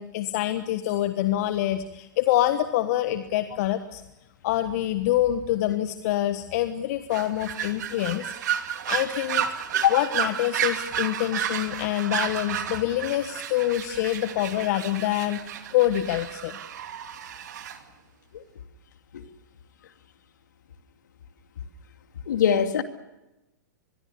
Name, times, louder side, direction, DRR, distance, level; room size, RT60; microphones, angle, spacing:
voice 1, 0.0-4.0 4.4-8.3 8.9-9.5 9.9-15.4 15.7-16.6, left 13 dB, 55° left, 10 dB, 1.4 m, -26 dB
sound 1, 7.1-17.8, right 9 dB, 65° right, 2.6 m, -31 dB
voice 2, 22.3-22.8, left 8 dB, 70° left, 7 dB, 2.4 m, -22 dB
25.0 x 22.0 x 7.0 m, 0.97 s
hypercardioid pair, 105°, 10 cm